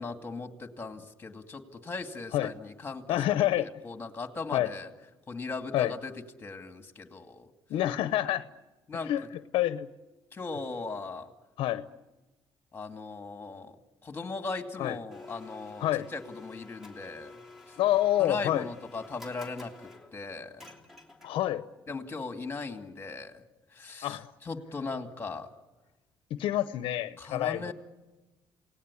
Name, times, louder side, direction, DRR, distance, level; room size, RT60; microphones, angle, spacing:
voice 1, 0.0-3.4 3.8-4.9 5.3-6.1 6.4-7.5 8.9-9.1 10.3-11.3 12.7-13.7 14.0-17.4 18.2-19.7 20.1-20.6 21.9-23.4 23.7-25.5 27.2-27.7, left 3 dB, 20° left, 6 dB, 2.5 m, -38 dB
voice 2, 3.1-3.7 4.5-4.7 5.7-5.9 7.7-8.5 9.0-9.2 9.5-9.9 11.6-11.8 14.8-15.0 15.8-16.1 17.8-18.7 21.2-21.7 24.0-24.3 26.3-27.7, left 13 dB, 75° left, 13 dB, 0.8 m, -27 dB
Domestic sounds home sounds, 15.1-21.6, left 3 dB, 5° right, 3.0 m, -51 dB
28.0 x 18.5 x 9.8 m, 1.1 s
cardioid pair, 120°, 9 cm